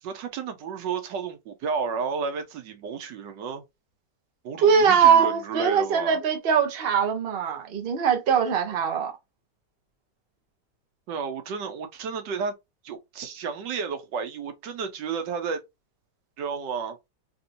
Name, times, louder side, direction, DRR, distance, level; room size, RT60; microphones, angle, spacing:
voice 1, 0.0-3.6 4.4-6.2 11.1-12.5 12.8-15.6 16.4-17.0, right 5 dB, 85° right, 1.4 m, -32 dB
voice 2, 4.6-9.1, right 7 dB, 45° right, 0.9 m, -21 dB
3.4 x 2.7 x 2.6 m
omnidirectional pair, 1.9 m